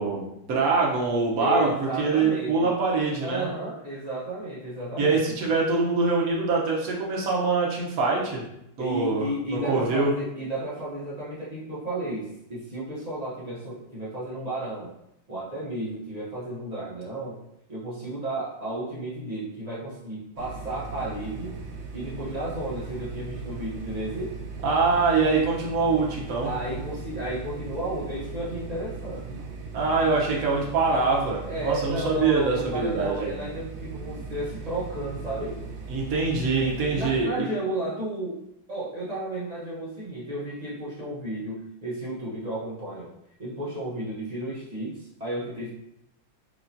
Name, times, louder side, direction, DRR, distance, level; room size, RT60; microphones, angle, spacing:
voice 1, 0.0-3.5 5.0-8.4 8.8-10.1 24.6-26.5 29.7-33.4 35.9-37.5, right 4 dB, 55° right, -2 dB, 1.1 m, -24 dB
voice 2, 1.4-2.8 3.2-5.4 8.8-14.9 15.3-17.4 17.7-21.5 21.9-24.4 26.4-29.4 31.5-35.6 36.7-38.4 38.7-43.1 43.4-45.7, right 1 dB, 40° right, -7 dB, 0.5 m, -33 dB
sound 1, 20.4-37.2, right 4 dB, 80° right, 1.5 m, -38 dB
4.7 x 3.0 x 2.6 m, 0.81 s
omnidirectional pair, 2.2 m